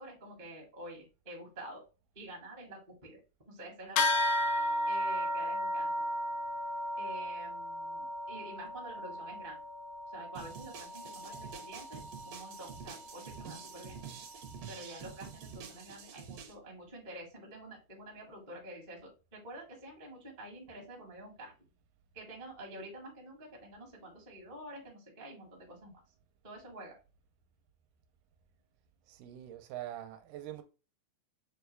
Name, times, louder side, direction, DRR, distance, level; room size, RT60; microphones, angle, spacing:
voice 1, 0.0-1.8 2.1-3.2 3.5-4.2 4.8-5.9 7.0-9.6 10.1-14.0 14.7-21.5 22.1-26.0 26.4-27.0, right 1 dB, 30° right, 0.7 m, -48 dB
sound 1, 4.0-13.8, left 1 dB, 80° left, 1.9 m, -35 dB
sound 2, 10.4-16.5, right 7 dB, 65° right, 1.8 m, -48 dB
voice 2, 29.1-30.6, right 12 dB, 80° right, 2.1 m, -44 dB
6.5 x 2.3 x 3.2 m
omnidirectional pair, 3.7 m